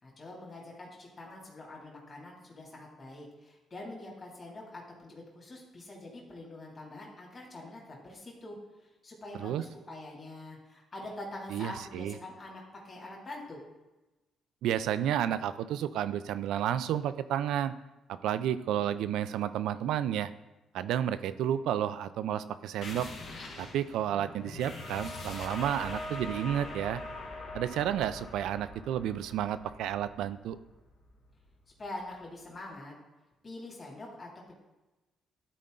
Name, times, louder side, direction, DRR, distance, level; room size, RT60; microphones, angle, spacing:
voice 1, 0.0-8.6 8.8-13.6 31.8-32.9 33.4-34.5, left 2 dB, 35° left, -3 dB, 2.6 m, -45 dB
voice 2, 11.5-12.1 14.6-17.7 18.1-20.3 20.7-23.1 23.6-27.0 27.5-30.6, right 10 dB, 85° right, 13 dB, 0.4 m, -31 dB
sound 1, 22.8-32.0, left 2 dB, 75° left, 1.8 m, -43 dB
12.5 x 4.3 x 3.9 m, 1.1 s
cardioid pair, 90°, 0 cm